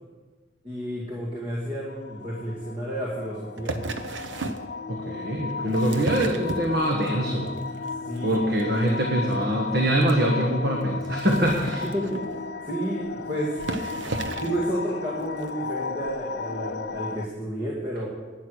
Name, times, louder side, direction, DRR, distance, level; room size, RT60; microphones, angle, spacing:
voice 1, 0.6-3.9 8.1-8.4 11.8-13.6 14.4-18.1, right 1 dB, 30° right, -5 dB, 2.2 m, -31 dB
sound 1, 1.9-17.3, left 4 dB, 55° left, 0.4 m, -35 dB
sound 2, 3.6-4.7 5.5-7.1 7.5-7.9 8.2-8.3 8.6-8.7 8.9-9.0 9.3-9.4 10.0-10.1 11.1-12.4 13.1-13.2 13.6-14.6 15.4-15.5, right 2 dB, 85° right, 0.9 m, -33 dB
voice 2, 4.9-7.5 8.2-11.9, right 1 dB, 60° right, 0 dB, 1.4 m, -24 dB
12.0 x 9.6 x 6.5 m, 1.4 s
head